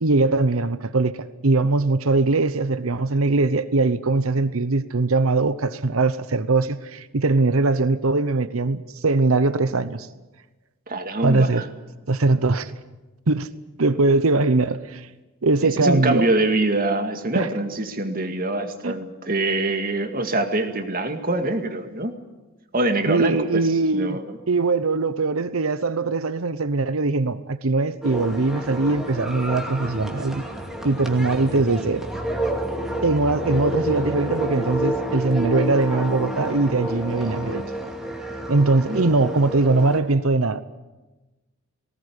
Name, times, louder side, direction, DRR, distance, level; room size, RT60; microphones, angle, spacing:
voice 1, 0.0-1.2 1.4-10.1 11.2-11.6 12.1-12.7 13.3-13.5 13.8-15.1 15.4-16.2 17.3-17.5 18.8-18.9 23.1-24.2 24.5-30.4 30.8-32.1 33.0-37.6 38.5-40.6, right 3 dB, 75° right, 0.9 m, -21 dB
voice 2, 10.9-11.7 15.6-22.2 22.7-24.4 33.5-33.6 38.9-39.1, right 2 dB, 40° right, 2.1 m, -24 dB
sound 1, 28.0-40.0, equal, ahead, 2.6 m, -29 dB
19.5 x 18.5 x 9.9 m
head